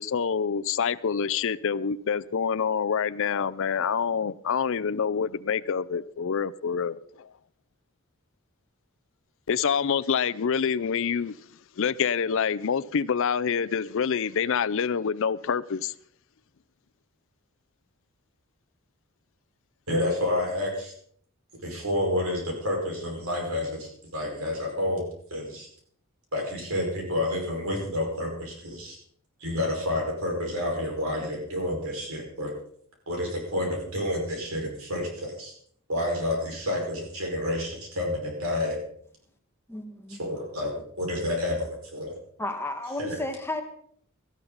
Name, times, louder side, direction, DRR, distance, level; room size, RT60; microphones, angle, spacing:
voice 1, 0.0-7.3 9.5-11.3 11.8-15.9, left 6 dB, 65° left, 0.5 m, -26 dB
voice 2, 19.9-20.9 21.6-25.7 26.3-29.0 29.4-32.5 33.1-35.5 35.9-38.8 40.1-40.7 41.0-42.1 43.0-43.2, left 1 dB, 85° right, 5.2 m, -29 dB
voice 3, 39.7-40.2 42.4-43.6, left 2 dB, 10° left, 1.4 m, -33 dB
17.5 x 13.0 x 4.0 m
head